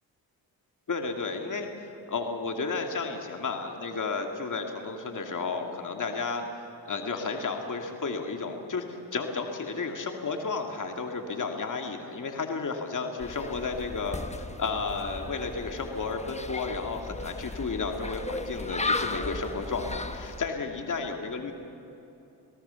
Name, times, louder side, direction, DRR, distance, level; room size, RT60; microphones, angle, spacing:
voice 1, 0.9-6.4 6.8-14.2 14.6-21.5, left 4 dB, 45° left, 3 dB, 2.4 m, -32 dB
sound 1, 13.2-20.5, left 2 dB, 15° left, 1.3 m, -35 dB
27.5 x 18.0 x 7.0 m, 2.9 s
cardioid pair, 60°, 44 cm